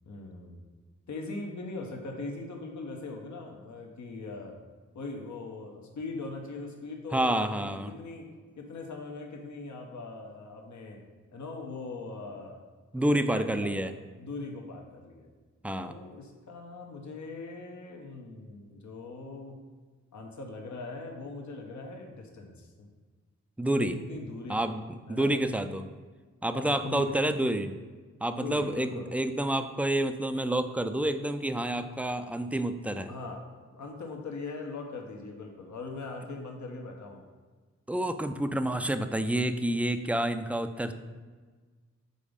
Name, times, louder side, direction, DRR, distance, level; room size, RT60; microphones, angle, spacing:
voice 1, 0.0-0.6 1.1-4.6 4.9-8.3 8.6-11.0 11.3-12.6 13.1-13.8 14.2-15.3 15.8-19.6 20.1-22.9 23.7-24.7 25.1-25.3 26.5-27.1 28.4-29.1 33.1-37.2, left 3 dB, 70° left, 2 dB, 1.0 m, -41 dB
voice 2, 7.1-7.9 12.9-13.9 15.6-15.9 23.6-24.0 24.5-25.9 26.4-27.8 28.2-33.1 37.9-40.9, right 1 dB, 5° right, 9 dB, 0.4 m, -29 dB
5.3 x 4.0 x 5.1 m, 1.4 s
cardioid pair, 45°, 30 cm